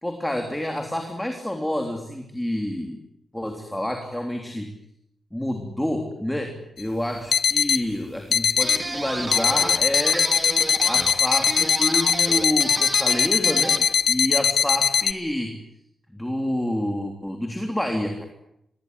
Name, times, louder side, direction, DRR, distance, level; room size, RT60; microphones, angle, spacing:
voice 1, 0.0-3.0 3.3-4.7 5.3-10.3 10.8-15.5 16.1-18.3, left 1 dB, 5° left, 3 dB, 3.4 m, -28 dB
sound 1, 6.8-6.9 7.3-7.8 8.3-8.8 9.3-15.1, left 7 dB, 65° left, 1.3 m, -21 dB
sound 2, 8.6-13.9, right 2 dB, 20° right, 3.3 m, -32 dB
25.5 x 21.5 x 9.9 m, 0.78 s
wide cardioid pair, 155°, 0 cm